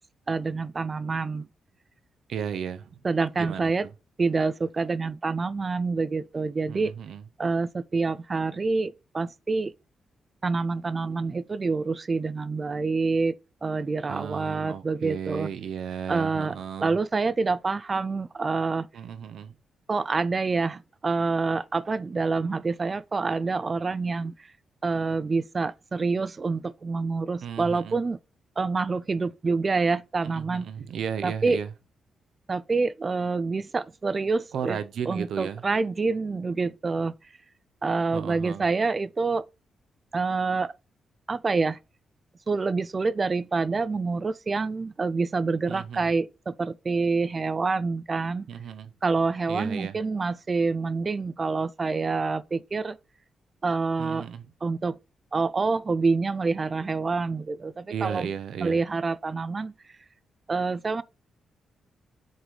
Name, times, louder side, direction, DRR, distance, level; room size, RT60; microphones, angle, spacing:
voice 1, 0.3-1.5 3.0-3.9 4.2-6.9 7.4-9.7 10.4-13.3 13.6-15.5 16.1-16.5 16.8-18.9 19.9-24.3 24.8-28.2 28.6-30.7 31.2-31.6 32.5-34.8 35.1-37.1 37.8-39.4 40.1-40.7 41.3-41.8 42.5-48.5 49.0-53.0 53.6-54.3 54.6-55.0 55.3-58.3 58.6-59.7 60.5-61.0, right 4 dB, 30° right, 0.3 m, -27 dB
voice 2, 2.3-3.0 3.3-3.9 6.7-7.2 14.1-17.0 18.9-19.5 27.4-28.0 30.2-31.7 34.5-35.6 38.1-38.6 45.7-46.1 48.5-48.9 49.5-50.0 54.0-54.5 57.9-58.8, right 8 dB, 75° right, 0.7 m, -34 dB
7.8 x 3.9 x 3.2 m
wide cardioid pair, 140°, 0 cm